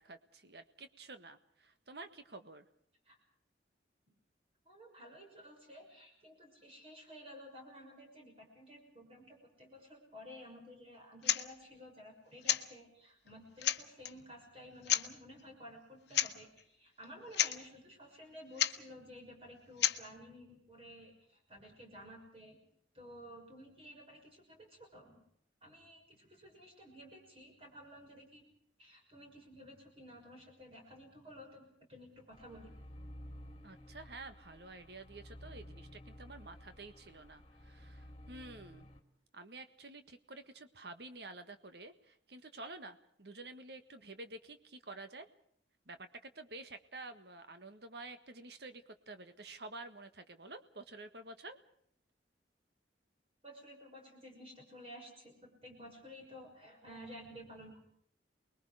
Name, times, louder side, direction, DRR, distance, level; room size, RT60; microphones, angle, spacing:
voice 1, 0.0-2.6 33.6-38.9 39.3-45.3 45.9-51.6, right 2 dB, 65° right, 9 dB, 1.6 m, -50 dB
voice 2, 4.6-22.6 22.9-25.2 25.6-28.4 28.8-32.8 53.4-57.8, equal, 30° right, 1 dB, 5.9 m, -53 dB
sound 1, 11.2-11.4 12.4-12.7 13.3-13.4 13.6-14.1 14.8-15.1 16.1-16.3 16.6-16.7 17.0-17.1 17.3-17.6 18.6-18.8 19.8-20.0, left 11 dB, 65° left, 1.1 m, -31 dB
sound 2, 32.3-39.0, equal, 25° left, 2.4 m, -53 dB
29.0 x 21.5 x 4.9 m, 0.66 s
head